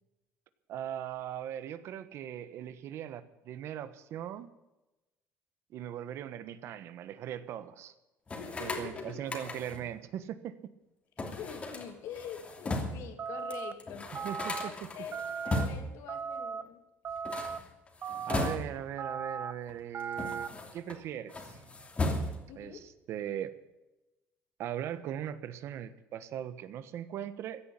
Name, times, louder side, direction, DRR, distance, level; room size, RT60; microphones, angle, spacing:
voice 1, 0.7-4.5 5.7-7.9 8.6-10.6 14.2-14.9 18.3-21.6 22.6-23.5 24.6-27.6, right 10 dB, 65° right, 13 dB, 1.3 m, -39 dB
voice 2, 8.3-9.2 11.3-14.1 14.6-16.8 17.1-17.2 22.5-22.9, left 8 dB, 75° left, 6 dB, 2.9 m, -45 dB
sound 1, 8.3-9.9 11.2-13.1 13.5-13.6 13.8-16.0 17.1-19.0 19.7-21.0 21.3-22.6, left 2 dB, 25° left, 2.9 m, -36 dB
sound 2, 13.2-13.7 14.1-14.7 15.1-15.7 16.1-16.6 17.0-17.6 18.0-18.5 19.0-19.5 19.9-20.5, right 6 dB, 40° right, 0.8 m, -37 dB
16.0 x 10.0 x 8.4 m, 1.0 s
cardioid pair, 120°, 5 cm